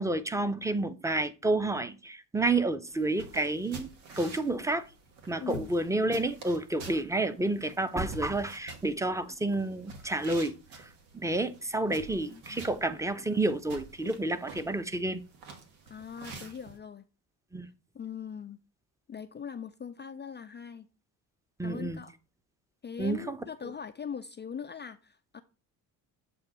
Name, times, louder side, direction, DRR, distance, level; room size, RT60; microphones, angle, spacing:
voice 1, 0.0-3.9 4.2-4.9 5.3-10.9 11.1-15.2 17.5-17.7 21.6-22.0 23.0-23.4 23.6-23.7, right 2 dB, 5° right, 0.7 m, -30 dB
sound 1, 2.9-16.8, right 3 dB, 80° right, 1.4 m, -48 dB
voice 2, 11.9-12.6 15.9-17.0 17.9-18.6 19.1-20.9 21.6-22.1 22.8-25.4, left 7 dB, 25° left, 0.4 m, -41 dB
7.8 x 2.7 x 5.9 m
hypercardioid pair, 55°, 49 cm